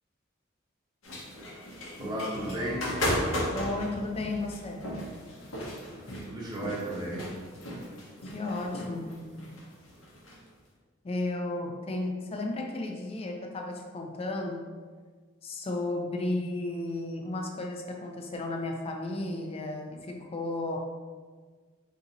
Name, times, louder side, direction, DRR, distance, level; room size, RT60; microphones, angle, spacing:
sound 1, 1.0-10.4, equal, 85° left, 0.8 m, -36 dB
voice 1, 2.0-2.9 6.0-7.3, right 1 dB, 20° right, -5 dB, 0.7 m, -34 dB
sound 2, 2.3-5.9, equal, 85° right, 0.3 m, -46 dB
voice 2, 3.5-4.9 8.2-9.2 11.0-14.7 15.4-20.8, left 2 dB, 30° left, 2 dB, 0.4 m, -33 dB
2.8 x 2.7 x 3.7 m, 1.5 s
head